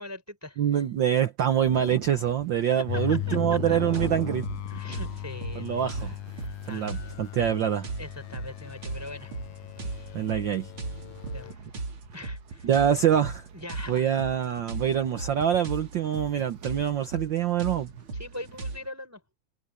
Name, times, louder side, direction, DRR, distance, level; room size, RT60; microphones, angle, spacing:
voice 1, 0.0-0.8 3.1-3.8 4.7-7.2 8.0-9.4 9.7-10.2 11.3-11.7 12.1-12.7 13.5-14.1 18.1-19.2, left 1 dB, 5° right, 4.6 m, -42 dB
voice 2, 0.6-4.4 5.5-6.1 6.7-7.9 10.1-10.7 12.6-13.4 13.9-17.9, right 9 dB, 85° right, 1.0 m, -25 dB
sound 1, 1.5-18.9, right 6 dB, 60° right, 3.0 m, -45 dB
sound 2, 2.9-11.5, left 17 dB, 85° left, 2.1 m, -37 dB
sound 3, 3.9-18.8, right 3 dB, 45° right, 3.9 m, -38 dB
omnidirectional pair, 3.3 m